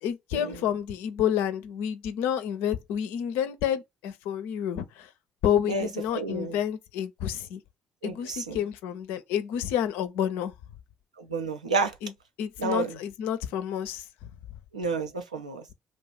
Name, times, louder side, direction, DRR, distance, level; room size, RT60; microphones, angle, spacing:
voice 1, 0.0-5.1 5.4-7.6 8.0-10.5 12.0-12.1 12.4-14.3, left 9 dB, 65° left, 0.4 m, -29 dB
voice 2, 5.7-6.6 8.0-8.6 11.2-11.9 12.6-13.0 14.7-15.6, right 3 dB, 85° right, 0.4 m, -30 dB
2.5 x 2.3 x 3.6 m
figure-of-eight pair, 45°, 4 cm